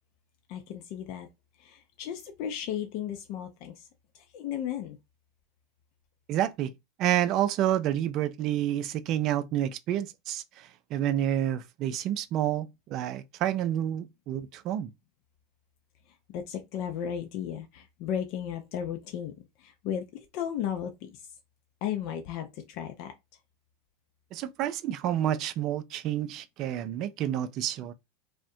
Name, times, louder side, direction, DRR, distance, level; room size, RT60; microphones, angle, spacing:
voice 1, 0.5-1.3 1.6-3.9 4.3-5.0 16.3-19.3 19.6-21.2 21.8-23.1, left 9 dB, 60° left, 0.4 m, -35 dB
voice 2, 6.3-6.7 7.0-14.9 24.3-27.9, right 11 dB, 50° right, 0.4 m, -29 dB
2.5 x 2.1 x 2.6 m
hypercardioid pair, 90°, 0 cm